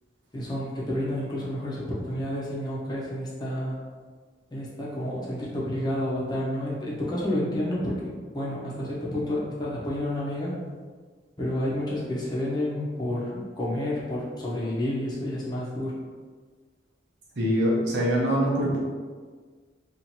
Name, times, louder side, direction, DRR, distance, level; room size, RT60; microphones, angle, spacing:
voice 1, 0.3-3.8 4.5-10.5 11.4-15.9, left 1 dB, 20° left, -5 dB, 0.7 m, -30 dB
voice 2, 17.4-18.8, equal, 70° right, -4 dB, 0.9 m, -23 dB
2.8 x 2.5 x 4.2 m, 1.5 s
head